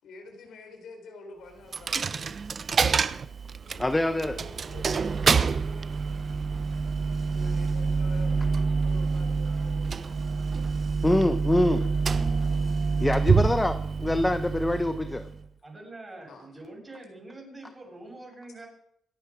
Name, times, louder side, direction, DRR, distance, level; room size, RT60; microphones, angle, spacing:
voice 1, 0.0-2.3 3.6-6.0 7.2-10.2 11.4-12.9 16.3-16.5, left 2 dB, 70° left, 4.2 m, -48 dB
Coin (dropping), 1.7-15.5, right 5 dB, 40° right, 0.7 m, -27 dB
voice 2, 3.8-4.4 11.0-11.9 13.0-15.3, left 1 dB, 15° left, 0.8 m, -25 dB
voice 3, 15.6-18.7, right 2 dB, 20° right, 7.4 m, -45 dB
26.5 x 9.2 x 5.0 m
cardioid pair, 90°, 0 cm